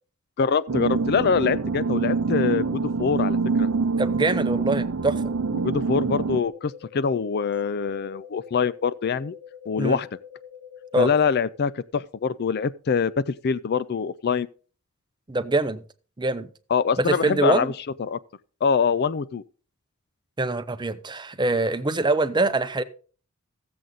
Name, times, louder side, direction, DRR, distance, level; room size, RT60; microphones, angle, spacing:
voice 1, 0.4-3.7 5.5-9.4 9.7-10.1 11.0-14.5 16.7-17.7 18.0-18.2 18.6-19.4, left 6 dB, 45° left, 0.4 m, -24 dB
sound 1, 0.7-6.4, right 4 dB, 65° right, 0.6 m, -25 dB
voice 2, 4.0-5.3 9.8-10.0 10.9-11.1 15.3-15.8 16.2-16.5 17.0-17.7 20.4-22.8, right 2 dB, 20° right, 0.7 m, -24 dB
sound 2, 6.5-11.5, left 8 dB, 10° left, 3.5 m, -45 dB
15.0 x 7.7 x 3.9 m
head